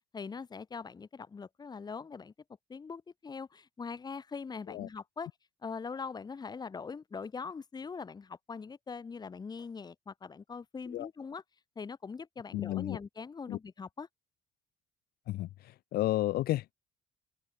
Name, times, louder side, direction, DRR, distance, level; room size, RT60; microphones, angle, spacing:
voice 1, 0.1-2.3 2.7-5.3 5.6-11.4 11.8-14.1, left 5 dB, 25° left, 1.0 m, -42 dB
voice 2, 12.5-13.0 13.5-13.6 15.3-16.7, left 15 dB, 65° left, 0.6 m, -32 dB
open air
cardioid pair, 110°, 17 cm